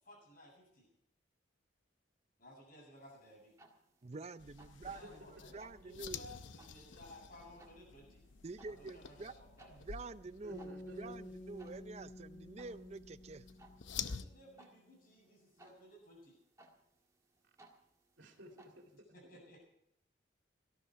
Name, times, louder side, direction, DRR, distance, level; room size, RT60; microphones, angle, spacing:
voice 1, 0.0-0.9 2.4-3.5 4.9-8.2 8.6-9.9 14.0-16.4 18.9-19.7, left 1 dB, 45° left, -1 dB, 7.8 m, -58 dB
sound 1, 3.0-19.0, right 2 dB, 15° right, 1.7 m, -66 dB
voice 2, 4.0-6.3 8.4-9.3 9.7-13.5, right 3 dB, 35° right, 13 dB, 0.5 m, -48 dB
sound 2, 4.4-14.3, left 7 dB, 75° left, 0.8 m, -50 dB
voice 3, 10.4-11.1 18.2-19.1, right 1 dB, 70° right, 2 dB, 2.8 m, -55 dB
sound 3, 10.5-14.7, left 1 dB, 20° left, 0.6 m, -52 dB
18.0 x 13.5 x 4.6 m, 0.76 s
head